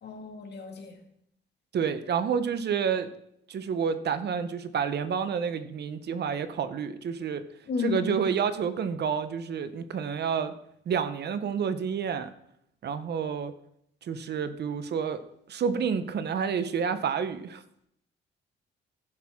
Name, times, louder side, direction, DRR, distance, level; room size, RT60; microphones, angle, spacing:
voice 1, 0.0-1.0 7.7-8.2, left 5 dB, 55° left, 3 dB, 2.0 m, -32 dB
voice 2, 1.7-3.1 3.5-7.4 7.8-10.5 10.9-12.3 12.8-13.5 14.0-15.2 15.5-17.6, right 7 dB, 55° right, 11 dB, 0.9 m, -29 dB
15.5 x 6.1 x 3.7 m, 0.73 s
cardioid pair, 90°, 20 cm